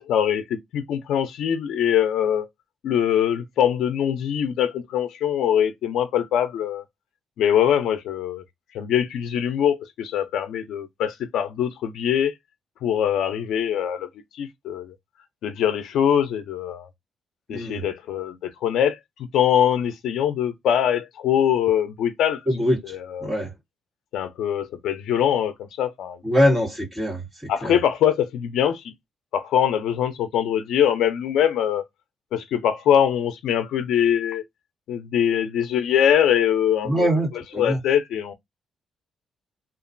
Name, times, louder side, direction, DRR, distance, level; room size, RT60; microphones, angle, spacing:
voice 1, 0.1-2.5 2.8-6.8 7.4-8.4 8.7-12.3 12.8-14.1 14.4-15.0 15.4-16.9 17.5-19.0 19.3-22.4 22.8-23.3 24.1-26.2 26.5-26.6 27.5-28.8 29.3-31.8 32.3-34.4 34.9-38.3, left 9 dB, 85° left, 0.5 m, -23 dB
voice 2, 17.5-17.8 22.5-22.9 23.2-23.5 26.2-27.2 27.6-27.7 36.8-37.8, equal, 10° right, 1.9 m, -22 dB
2.9 x 2.4 x 2.5 m
cardioid pair, 155°, 0 cm